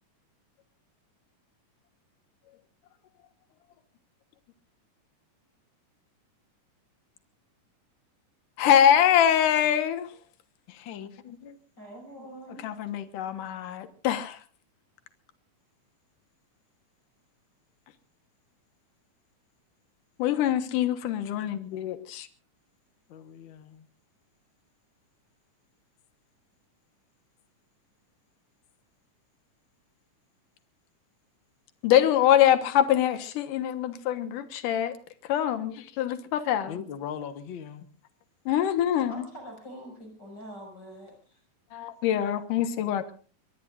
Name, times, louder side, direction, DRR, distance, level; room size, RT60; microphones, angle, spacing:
voice 1, 8.6-10.1 12.6-14.4 20.2-22.3 31.8-35.0 35.3-36.8 38.5-39.2 41.7-43.1, left 10 dB, 80° left, 2.8 m, -24 dB
voice 2, 10.7-11.6 23.1-23.9 36.7-37.8, left 8 dB, 60° left, 1.3 m, -40 dB
voice 3, 11.8-12.6 13.4-13.5 39.1-41.4, equal, 30° left, 6.7 m, -44 dB
24.5 x 22.0 x 2.5 m
omnidirectional pair, 3.7 m